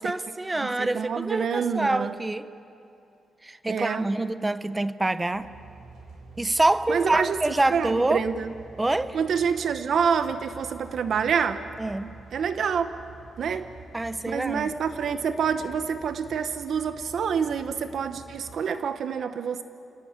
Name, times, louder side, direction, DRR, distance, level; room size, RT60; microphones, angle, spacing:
voice 1, 0.0-2.5 3.4-5.5 6.4-8.2 8.8-9.2 11.8-12.2 13.9-14.7, right 2 dB, 15° right, 0.8 m, -26 dB
voice 2, 0.5-2.1 3.7-4.1 6.9-7.4 7.7-8.5 9.1-11.7 12.3-12.9 13.4-13.7 14.3-19.6, right 6 dB, 65° right, 0.9 m, -27 dB
sound 1, 5.3-18.6, right 4 dB, 80° right, 4.3 m, -47 dB
29.0 x 18.5 x 8.9 m
cardioid pair, 130°, 0 cm